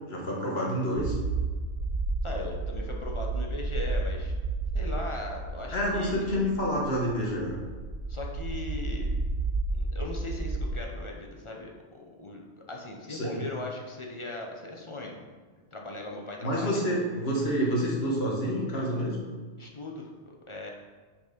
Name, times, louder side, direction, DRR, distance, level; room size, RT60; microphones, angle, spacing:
voice 1, 0.1-1.2 5.7-7.6 13.1-13.4 16.4-19.2, equal, 60° left, -2 dB, 1.7 m, -28 dB
sound 1, 1.0-10.8, right 3 dB, 70° right, 1.2 m, -32 dB
voice 2, 2.2-4.3 4.7-6.3 8.1-9.1 9.7-12.4 12.7-15.2 15.7-16.8 19.6-20.7, left 2 dB, 30° left, 0 dB, 0.8 m, -39 dB
6.5 x 5.0 x 5.1 m, 1.4 s
omnidirectional pair, 1.2 m